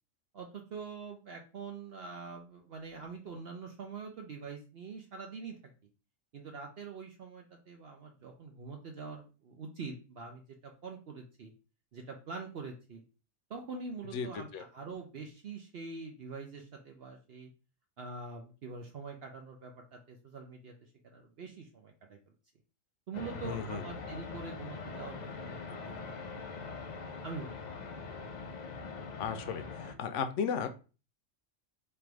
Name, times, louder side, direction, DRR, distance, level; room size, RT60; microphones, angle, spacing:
voice 1, 0.3-5.7 6.3-11.5 11.9-13.0 13.5-17.5 18.0-22.2 23.1-26.3 26.6-26.7 27.2-27.6, right 4 dB, 60° right, 2 dB, 0.8 m, -44 dB
sound 1, 23.1-29.9, left 4 dB, 55° left, 0.5 m, -42 dB
voice 2, 23.4-23.8 29.2-29.6 30.0-30.7, left 6 dB, 75° left, 8 dB, 0.9 m, -34 dB
3.4 x 2.6 x 4.5 m, 0.34 s
omnidirectional pair, 1.3 m